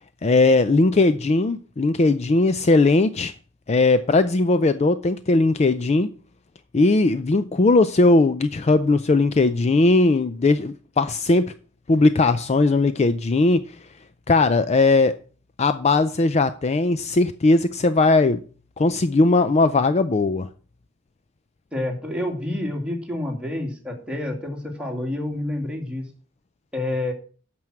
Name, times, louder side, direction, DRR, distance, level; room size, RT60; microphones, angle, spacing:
voice 1, 0.2-3.3 3.7-6.1 6.7-11.5 11.9-13.6 14.3-15.1 15.6-18.4 18.8-20.5, left 3 dB, 35° left, 0.4 m, -18 dB
voice 2, 21.7-26.0 26.7-27.1, left 1 dB, 5° right, 2.4 m, -28 dB
9.1 x 6.1 x 7.7 m
head